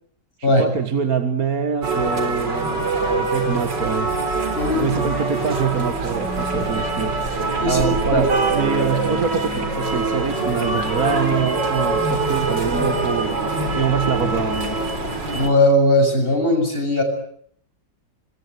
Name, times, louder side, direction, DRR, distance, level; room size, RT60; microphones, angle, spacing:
voice 1, 0.6-4.1 4.8-14.8, right 6 dB, 55° right, 8 dB, 2.0 m, -25 dB
sound 1, 1.8-15.5, right 3 dB, 85° right, 4.7 m, -23 dB
voice 2, 7.6-8.3 15.3-17.0, left 1 dB, 30° left, 5 dB, 7.3 m, -18 dB
27.0 x 22.0 x 9.5 m, 0.65 s
omnidirectional pair, 1.9 m